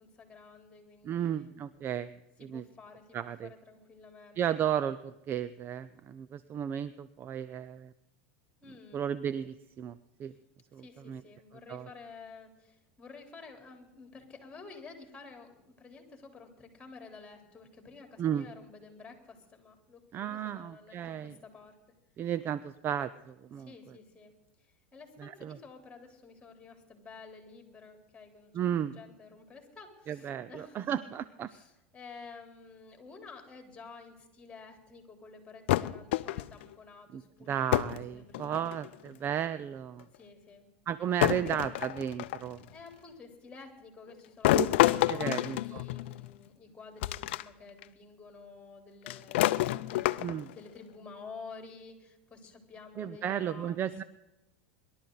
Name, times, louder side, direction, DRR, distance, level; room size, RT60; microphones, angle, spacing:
voice 1, 0.0-1.5 2.4-4.4 8.6-9.0 10.8-21.8 23.6-28.5 28.8-31.2 31.5-38.7 40.1-40.7 41.0-41.6 42.7-53.8, left 4 dB, 15° left, 4 dB, 3.7 m, -51 dB
voice 2, 1.0-2.1 2.4-2.6 3.1-3.5 4.4-7.9 8.9-10.3 10.7-11.2 11.7-11.9 18.2-18.5 20.1-21.3 22.2-23.7 25.2-25.6 28.5-29.0 30.1-31.5 37.1-37.2 37.5-40.1 40.9-42.6 44.5-44.7 45.1-45.8 50.2-50.4 53.0-54.0, right 9 dB, 35° right, 15 dB, 0.5 m, -34 dB
sound 1, 35.7-36.6 37.7-38.0 38.3-38.9 40.0-40.1 41.2-42.5 44.4-46.3 47.0-47.4 47.8-47.9 49.1-50.5, left 16 dB, 75° left, 0.5 m, -28 dB
23.0 x 12.0 x 4.0 m, 0.95 s
supercardioid pair, 110°, 6 cm